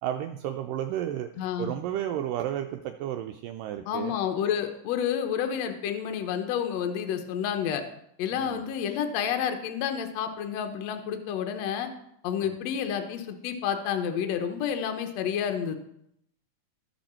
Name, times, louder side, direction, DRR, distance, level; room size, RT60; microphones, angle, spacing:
voice 1, 0.0-1.3 1.6-4.2 8.3-8.6 12.5-12.6, right 11 dB, 80° right, 5 dB, 2.1 m, -32 dB
voice 2, 1.4-1.7 3.9-7.8 8.2-11.9 12.2-15.8, left 8 dB, 75° left, 6 dB, 1.6 m, -29 dB
14.5 x 5.4 x 4.3 m, 0.76 s
omnidirectional pair, 4.1 m